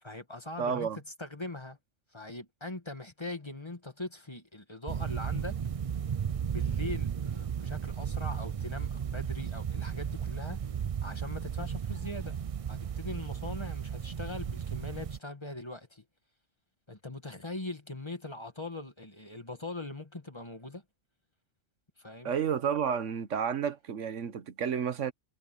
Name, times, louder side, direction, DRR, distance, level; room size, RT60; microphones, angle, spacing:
voice 1, 0.0-1.8 2.1-5.6 6.4-10.6 11.0-12.4 12.7-16.0 16.9-20.8 22.0-22.3, left 2 dB, 20° left, 1.7 m, -41 dB
voice 2, 0.6-1.0 22.2-25.1, right 7 dB, 75° right, 1.3 m, -31 dB
sound 1, 4.9-15.2, right 8 dB, 55° right, 0.4 m, -34 dB
omnidirectional pair, 1.3 m